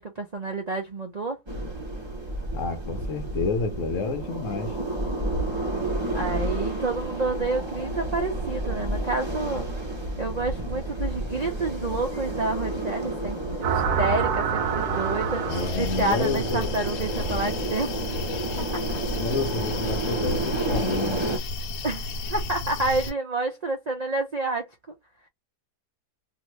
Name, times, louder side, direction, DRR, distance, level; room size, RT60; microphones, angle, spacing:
voice 1, 0.0-1.4 6.1-9.7 10.2-15.5 15.8-17.9 18.7-18.8 21.8-24.6, right 2 dB, 55° right, 0.4 m, -29 dB
sound 1, 1.5-21.4, right 1 dB, 20° right, 0.8 m, -31 dB
voice 2, 2.5-4.8 15.4-16.7 19.2-21.2, left 4 dB, 60° left, 0.9 m, -29 dB
sound 2, 13.6-16.0, right 7 dB, 75° right, 1.1 m, -26 dB
sound 3, 15.5-23.1, left 2 dB, 80° left, 1.1 m, -33 dB
2.8 x 2.5 x 3.1 m
omnidirectional pair, 1.7 m